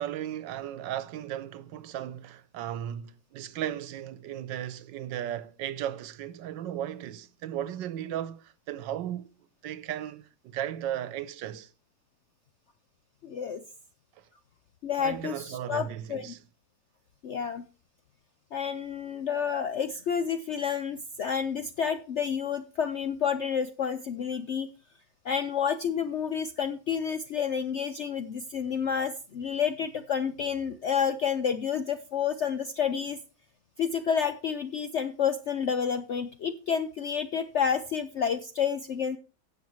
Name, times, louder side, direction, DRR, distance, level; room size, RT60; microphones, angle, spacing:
voice 1, 0.0-9.3 9.6-11.7 15.0-16.4, right 11 dB, 90° right, 1.4 m, -36 dB
voice 2, 13.2-13.6 14.8-16.3 17.2-17.6 18.5-24.7 25.2-33.2 33.8-39.2, left 7 dB, 70° left, 0.6 m, -29 dB
16.5 x 6.3 x 3.1 m
omnidirectional pair, 1.9 m